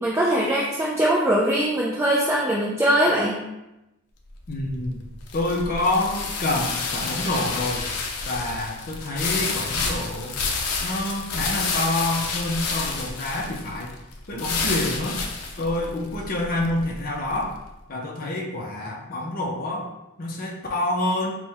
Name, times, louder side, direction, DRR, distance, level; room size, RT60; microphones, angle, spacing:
voice 1, 0.0-3.5, right 1 dB, 10° right, -5 dB, 0.3 m, -21 dB
sound 1, 4.3-17.6, left 4 dB, 85° left, 0.5 m, -30 dB
voice 2, 4.5-5.0 5.3-7.9 8.2-10.4 10.8-13.9 14.3-15.2 15.6-17.5 17.9-19.9 20.2-21.4, left 1 dB, 40° left, -2 dB, 0.5 m, -27 dB
4.3 x 2.1 x 3.4 m, 0.95 s
head